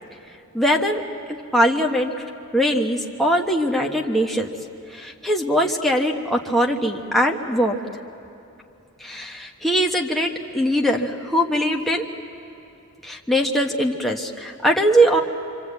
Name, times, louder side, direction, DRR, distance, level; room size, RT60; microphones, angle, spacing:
voice 1, 0.5-1.0 1.5-2.1 2.5-4.5 4.9-7.7 9.0-12.0 13.0-15.2, equal, ahead, 0 dB, 1.2 m, -21 dB
26.5 x 25.5 x 8.3 m, 2.7 s
head